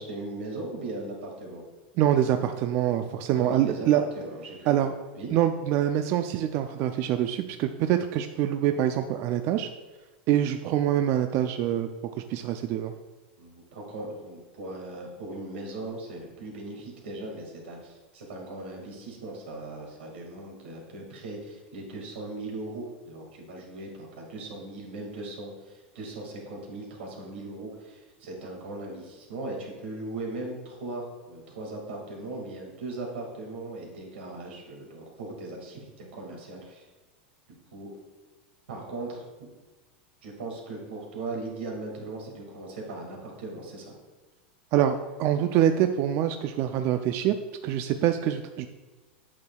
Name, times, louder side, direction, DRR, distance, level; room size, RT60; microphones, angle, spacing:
voice 1, 0.0-1.6 2.9-3.0 3.3-4.7 5.1-5.3 13.4-36.9 37.7-37.9 38.7-39.6 40.2-43.9, right 2 dB, 90° right, 0 dB, 2.0 m, -38 dB
voice 2, 2.0-4.0 4.7-4.9 5.3-9.7 10.3-11.9 12.3-12.9 44.7-47.3 47.6-48.7, right 11 dB, 45° right, 8 dB, 0.3 m, -25 dB
8.5 x 6.1 x 2.3 m, 1.2 s
supercardioid pair, 130°, 6 cm